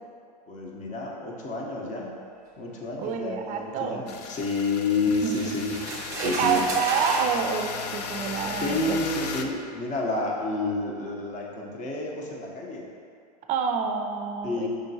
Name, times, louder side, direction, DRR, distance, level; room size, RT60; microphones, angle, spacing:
voice 1, 0.5-2.2 2.6-6.6 8.6-12.9 14.4-14.7, left 3 dB, 35° left, -1 dB, 0.9 m, -30 dB
voice 2, 3.0-4.1 5.2-5.4 6.2-9.0 13.5-14.7, right 6 dB, 35° right, 5 dB, 0.4 m, -28 dB
sound 1, 4.1-9.4, left 6 dB, 75° left, 0.4 m, -36 dB
sound 2, 5.1-7.4 8.3-8.4 9.0-9.2, right 2 dB, 15° right, 0.9 m, -33 dB
5.1 x 3.5 x 2.8 m, 2.4 s
hypercardioid pair, 105°, 21 cm